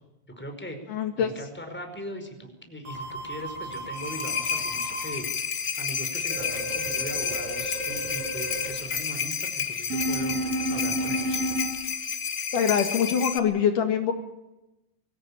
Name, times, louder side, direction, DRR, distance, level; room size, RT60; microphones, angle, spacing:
voice 1, 0.4-10.4 10.7-11.4, equal, 5° left, 5 dB, 4.8 m, -39 dB
voice 2, 0.9-1.3 12.5-14.1, left 8 dB, 65° left, 5 dB, 3.4 m, -24 dB
sound 1, 2.9-5.1 6.3-8.7 9.9-11.7, right 1 dB, 70° right, 9.8 m, -32 dB
sound 2, 3.7-13.4, left 7 dB, 50° left, 1.0 m, -31 dB
24.0 x 17.0 x 8.9 m, 0.98 s
omnidirectional pair, 4.0 m